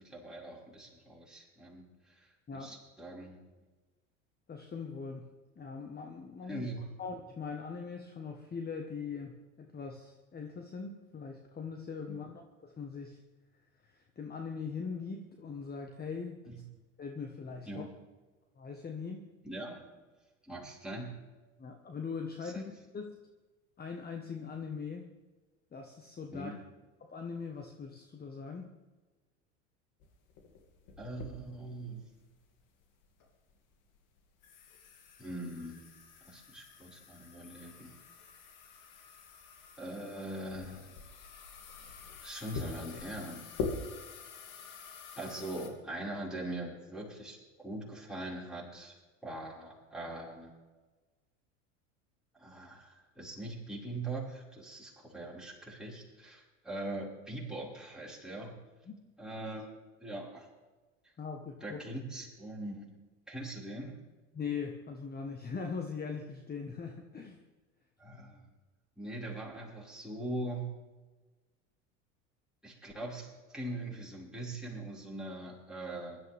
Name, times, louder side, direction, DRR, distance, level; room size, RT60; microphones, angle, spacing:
voice 1, 0.0-3.4 6.5-6.8 12.1-12.2 16.5-16.6 17.6-17.9 19.4-19.8 20.4-21.1 22.4-22.6 26.3-26.6 31.0-32.0 35.2-35.9 36.2-37.9 39.8-41.0 42.2-43.4 45.2-49.0 49.2-50.5 52.4-58.5 59.2-59.7 60.0-60.5 61.6-62.9 63.3-64.0 68.0-68.5 69.0-70.7 72.6-76.2, right 1 dB, ahead, -5 dB, 5.7 m, -42 dB
voice 2, 4.5-6.6 7.0-13.2 13.9-16.4 17.0-17.9 18.6-19.3 21.6-23.1 23.8-25.1 25.7-26.6 27.0-28.7 58.9-59.0 61.2-61.8 64.3-67.4, left 5 dB, 25° left, 4 dB, 1.5 m, -41 dB
sound 1, 30.0-45.7, left 4 dB, 55° left, 2.7 m, -45 dB
23.0 x 12.5 x 3.6 m, 1.2 s
hypercardioid pair, 75°, 38 cm